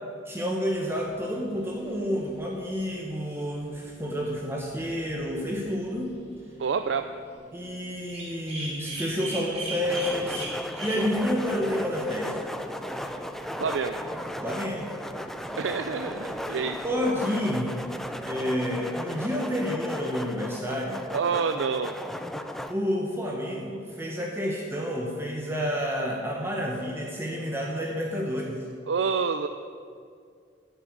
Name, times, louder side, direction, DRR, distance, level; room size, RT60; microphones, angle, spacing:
voice 1, 0.3-6.2 7.5-10.5 10.8-12.4 14.4-14.9 16.8-21.0 22.7-28.6, equal, 15° right, -1 dB, 1.1 m, -29 dB
sound 1, 0.7-18.4, right 1 dB, 35° right, 2.9 m, -43 dB
voice 2, 6.6-7.1 13.6-14.0 15.6-16.8 21.1-21.9 28.9-29.5, right 5 dB, 90° right, 8 dB, 0.4 m, -27 dB
sound 2, 9.8-22.7, equal, ahead, 0.5 m, -36 dB
10.0 x 7.0 x 8.6 m, 2.2 s
head